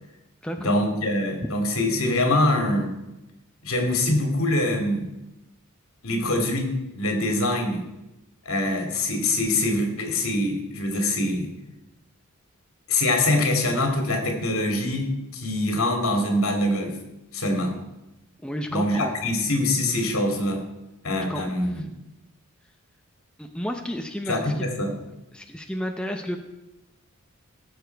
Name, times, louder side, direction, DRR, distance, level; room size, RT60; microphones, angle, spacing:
voice 1, 0.6-2.9 3.6-5.1 6.0-7.8 8.4-11.5 12.9-15.1 15.3-17.0 17.3-17.7 18.7-20.6 21.0-21.9 24.3-24.9, left 1 dB, 75° left, 4 dB, 2.5 m, -24 dB
voice 2, 18.4-19.2 21.3-21.8 23.4-24.5 25.3-26.4, equal, 5° left, 4 dB, 0.7 m, -32 dB
17.0 x 7.1 x 4.6 m, 0.95 s
head